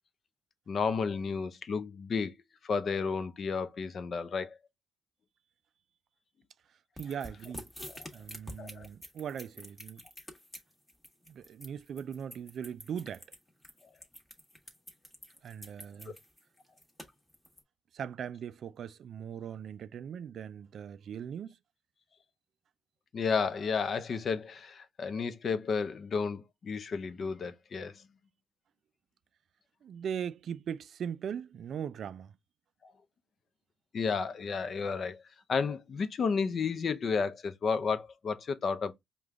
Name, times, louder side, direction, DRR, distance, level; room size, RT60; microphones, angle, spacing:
voice 1, 0.7-2.3 2.6-4.6 8.0-8.1 8.6-8.9 23.1-28.0 32.8-32.9 33.9-35.2 35.5-38.9, left 5 dB, 50° left, 0.6 m, -32 dB
sound 1, 7.0-17.6, left 1 dB, 10° left, 1.3 m, -48 dB
voice 2, 7.0-7.7 8.1-10.0 11.3-13.3 15.4-16.2 17.9-21.6 29.8-32.3, right 8 dB, 60° right, 0.3 m, -39 dB
5.0 x 2.3 x 3.5 m
cardioid pair, 90°, 0 cm